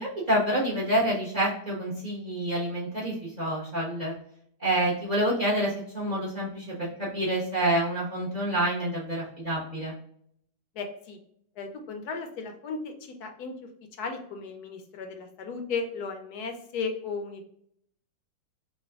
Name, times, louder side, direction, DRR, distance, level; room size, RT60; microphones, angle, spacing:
voice 1, 0.0-4.1 4.6-9.9, right 1 dB, 30° right, -6 dB, 0.9 m, -28 dB
voice 2, 10.7-11.2 11.6-13.5 14.0-17.4, left 4 dB, 70° left, 5 dB, 1.1 m, -35 dB
3.3 x 2.5 x 3.4 m, 0.68 s
omnidirectional pair, 2.0 m